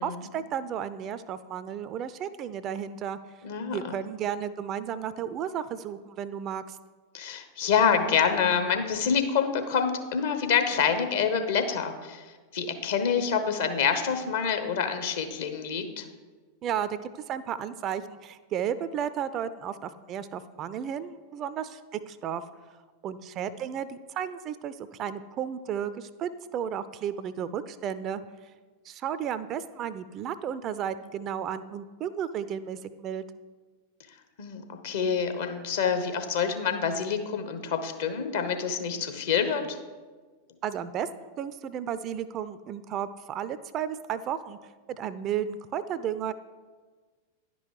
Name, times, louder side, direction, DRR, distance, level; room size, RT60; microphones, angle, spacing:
voice 1, 0.0-3.2 3.7-6.8 16.6-17.0 17.3-22.4 23.0-28.2 28.8-33.2 40.6-46.3, right 9 dB, 35° right, 14 dB, 0.3 m, -33 dB
voice 2, 3.4-4.0 7.1-12.2 12.5-16.1 34.4-39.8, left 6 dB, 55° left, 7 dB, 0.8 m, -27 dB
10.5 x 5.4 x 4.7 m, 1.4 s
figure-of-eight pair, 90°, 0 cm